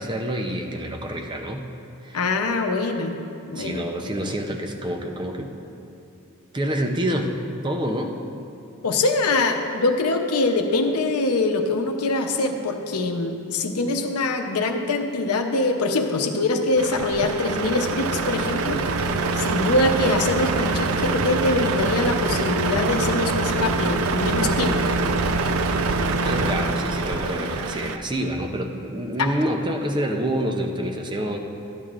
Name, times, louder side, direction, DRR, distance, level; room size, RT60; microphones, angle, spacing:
voice 1, 0.0-1.6 2.0-2.2 3.5-5.5 6.5-7.3 7.6-8.2 26.2-31.4, right 1 dB, 20° right, 2 dB, 0.6 m, -27 dB
voice 2, 2.1-3.2 3.5-3.9 8.8-19.1 19.3-24.9 29.2-29.3, left 2 dB, 90° left, 4 dB, 0.7 m, -23 dB
Truck, 16.8-28.0, right 3 dB, 75° right, 0.4 m, -24 dB
12.5 x 10.5 x 2.5 m, 2.6 s
head